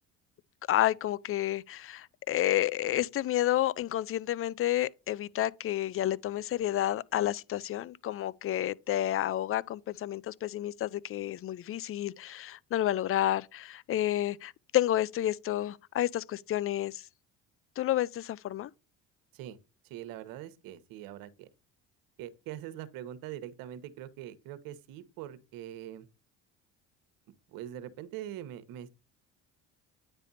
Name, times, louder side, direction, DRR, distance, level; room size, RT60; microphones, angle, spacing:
voice 1, 0.7-17.0 17.8-18.7, left 13 dB, 40° left, 0.5 m, -30 dB
voice 2, 19.8-21.5 22.2-26.0 27.5-28.9, right 12 dB, 75° right, 1.1 m, -43 dB
9.6 x 3.4 x 4.1 m
supercardioid pair, 75°, 35 cm